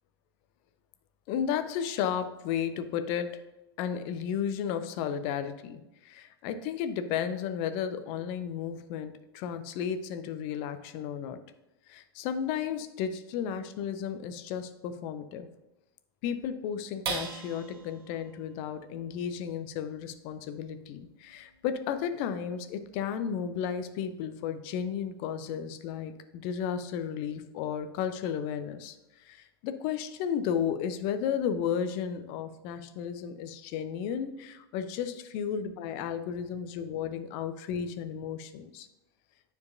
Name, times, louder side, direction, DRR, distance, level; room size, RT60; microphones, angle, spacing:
voice 1, 1.3-3.4 3.8-11.4 11.9-15.5 16.2-38.9, left 8 dB, 45° left, 9 dB, 0.6 m, -33 dB
sound 1, 17.0-23.7 24.2-24.3 24.7-25.2, right 5 dB, 60° right, 1.1 m, -43 dB
9.4 x 4.6 x 2.5 m, 0.96 s
figure-of-eight pair, 85°, 13 cm